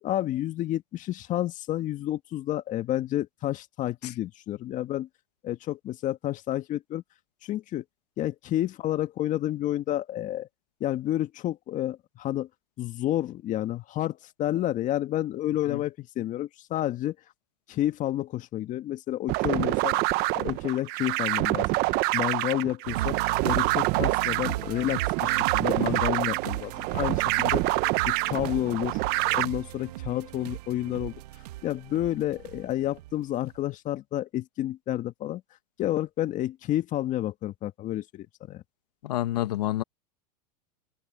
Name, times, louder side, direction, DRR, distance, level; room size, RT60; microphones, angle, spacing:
voice 1, 0.0-5.1 5.4-7.0 7.4-7.8 8.2-10.5 10.8-12.5 12.8-17.1 17.7-20.0 20.3-21.7 22.1-27.7 28.0-29.0 29.3-31.1 31.6-35.4 35.8-38.6, left 13 dB, 40° left, 2.0 m, -30 dB
sound 1, 19.3-29.4, right 22 dB, 50° right, 1.1 m, -26 dB
sound 2, 22.9-33.1 33.5-33.6, right 16 dB, 75° right, 2.1 m, -36 dB
voice 2, 39.0-39.8, left 14 dB, 80° left, 1.7 m, -28 dB
hypercardioid pair, 115°, 21 cm